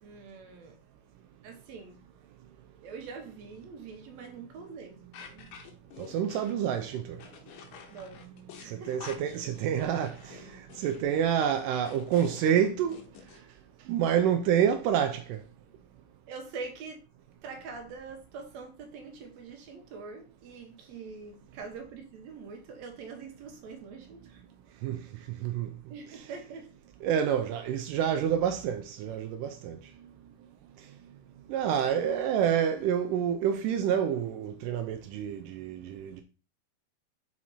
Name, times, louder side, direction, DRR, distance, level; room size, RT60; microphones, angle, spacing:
voice 1, 0.0-0.8 1.4-2.0 2.8-5.5 7.9-8.3 8.6-9.1 16.3-17.0 17.4-24.4 25.2-25.3 25.9-26.7, right 4 dB, 60° right, 2.0 m, -44 dB
sound 1, 5.1-13.4, left 7 dB, 75° left, 2.5 m, -49 dB
voice 2, 6.0-7.2 8.2-8.3 8.6-13.0 13.9-15.4 24.8-25.0 25.4-25.7 26.1-26.3 27.0-29.8 31.5-36.2, right 9 dB, 85° right, 1.9 m, -28 dB
6.0 x 4.4 x 4.1 m
omnidirectional pair, 4.3 m